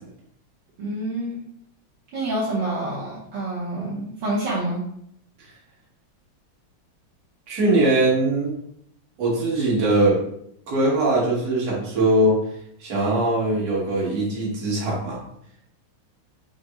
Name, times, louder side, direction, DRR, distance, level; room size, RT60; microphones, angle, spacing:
voice 1, 0.8-1.4 2.1-4.8, right 1 dB, 70° right, -6 dB, 1.5 m, -27 dB
voice 2, 7.5-8.5 9.2-10.2 10.7-12.4 12.8-15.2, right 2 dB, 50° right, -4 dB, 1.5 m, -21 dB
5.8 x 2.0 x 2.8 m, 0.71 s
omnidirectional pair, 2.2 m